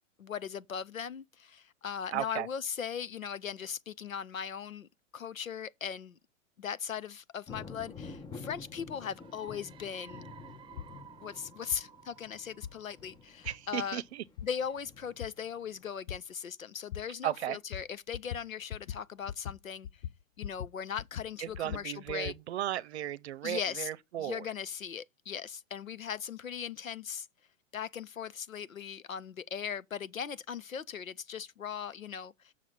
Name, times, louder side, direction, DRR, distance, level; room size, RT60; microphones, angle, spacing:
voice 1, 0.2-4.9 5.1-6.2 6.6-10.2 11.2-14.0 14.4-20.0 20.4-22.3 23.4-23.9 24.2-27.3 27.7-32.5, left 7 dB, 85° left, 0.7 m, -39 dB
voice 2, 2.1-2.5 13.4-14.2 17.2-17.6 21.4-24.5, right 13 dB, 55° right, 0.8 m, -35 dB
sound 1, 7.5-15.8, left 4 dB, 10° left, 0.8 m, -49 dB
sound 2, 9.0-13.6, right 8 dB, 10° right, 1.3 m, -55 dB
sound 3, 10.8-10.9 11.7-11.8 12.6-12.7 13.4-13.5 14.4-14.5 15.2-15.3 16.1-16.2 16.9-17.0 17.7-17.8 18.1-18.4 18.7-19.0 19.3-19.6 19.8-20.7 21.0-22.4, left 10 dB, 40° left, 0.5 m, -40 dB
7.2 x 6.5 x 5.4 m
figure-of-eight pair, 105°, 39 cm